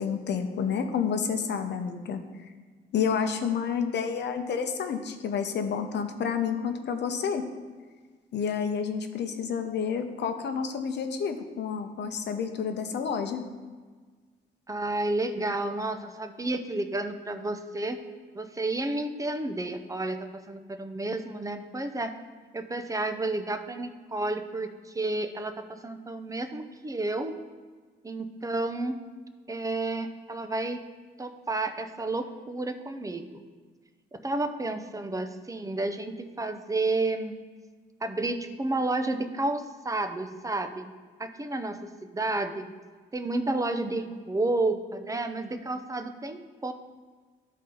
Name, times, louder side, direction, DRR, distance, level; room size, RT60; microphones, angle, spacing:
voice 1, 0.0-2.2 2.9-7.4 8.3-13.4, left 6 dB, 60° left, 6 dB, 0.8 m, -29 dB
voice 2, 14.7-18.0 18.3-22.1 22.5-27.3 28.0-29.0 29.5-30.8 31.2-33.4 34.1-37.3 38.0-40.9 41.2-42.7 43.1-46.7, right 2 dB, 15° right, 8 dB, 0.6 m, -31 dB
11.0 x 4.2 x 3.8 m, 1.4 s
cardioid pair, 90°, 20 cm